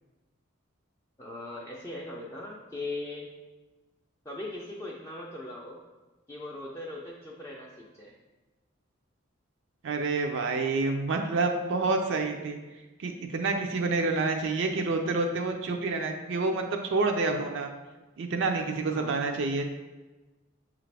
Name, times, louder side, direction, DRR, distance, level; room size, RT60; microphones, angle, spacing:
voice 1, 1.2-3.3 4.3-5.8 6.3-8.1 18.9-19.2, left 2 dB, 15° left, -4 dB, 0.4 m, -39 dB
voice 2, 9.8-12.6 13.0-17.7 18.2-19.6, right 3 dB, 65° right, 3 dB, 0.4 m, -28 dB
6.4 x 2.5 x 3.2 m, 1.2 s
head